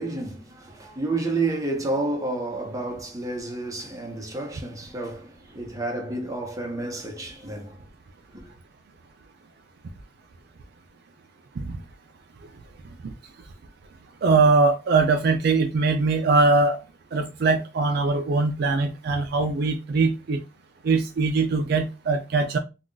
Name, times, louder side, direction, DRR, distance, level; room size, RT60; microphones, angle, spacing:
voice 1, 0.0-7.8 8.3-8.4, right 2 dB, 20° right, 0.8 m, -30 dB
voice 2, 14.2-16.8 17.1-20.4 20.8-22.6, right 3 dB, 55° right, 0.4 m, -21 dB
2.4 x 2.3 x 3.7 m
head